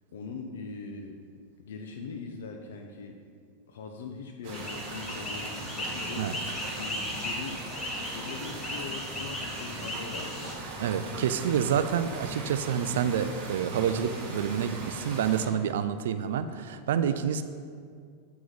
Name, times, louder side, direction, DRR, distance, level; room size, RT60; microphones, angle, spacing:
voice 1, 0.1-1.2 1.6-3.2 3.7-6.5 6.8-7.6 8.1-10.5, left 4 dB, 90° left, 3 dB, 0.6 m, -41 dB
sound 1, 4.4-15.5, right 2 dB, 50° right, 1.5 m, -39 dB
sound 2, 4.5-10.5, left 1 dB, 15° left, 1.1 m, -37 dB
voice 2, 10.8-17.4, right 8 dB, 85° right, 11 dB, 0.4 m, -28 dB
8.1 x 4.8 x 4.0 m, 2.1 s
supercardioid pair, 145°, 0 cm